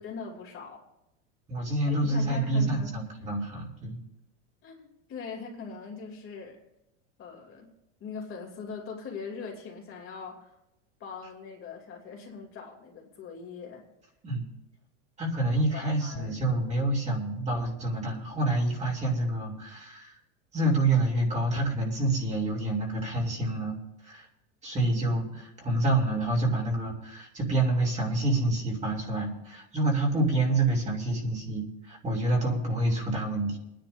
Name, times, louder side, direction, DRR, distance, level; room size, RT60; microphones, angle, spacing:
voice 1, 0.0-0.8 1.9-2.9 4.6-6.6 7.2-10.6 11.0-13.9 15.7-16.6, left 5 dB, 35° left, 1 dB, 2.7 m, -41 dB
voice 2, 1.5-4.0 14.2-14.4 15.2-20.2 20.5-23.8 24.0-24.3 24.6-33.6, right 2 dB, 20° right, -1 dB, 2.7 m, -27 dB
28.5 x 10.5 x 2.6 m, 0.88 s
supercardioid pair, 135°, 36 cm